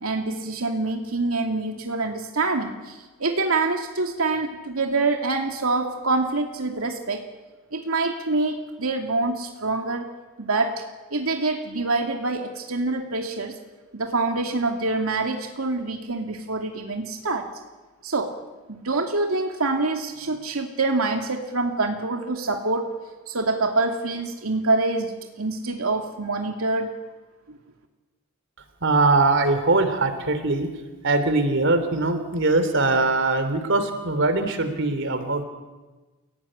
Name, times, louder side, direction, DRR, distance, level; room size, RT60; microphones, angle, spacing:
voice 1, 0.0-7.2 7.7-10.1 10.4-10.8 11.1-13.6 13.9-17.5 18.0-18.3 18.7-26.9, right 3 dB, 80° right, 3 dB, 2.5 m, -26 dB
voice 2, 28.8-30.7 31.0-35.4, right 3 dB, 60° right, 9 dB, 3.2 m, -21 dB
29.5 x 17.5 x 10.0 m, 1.2 s
head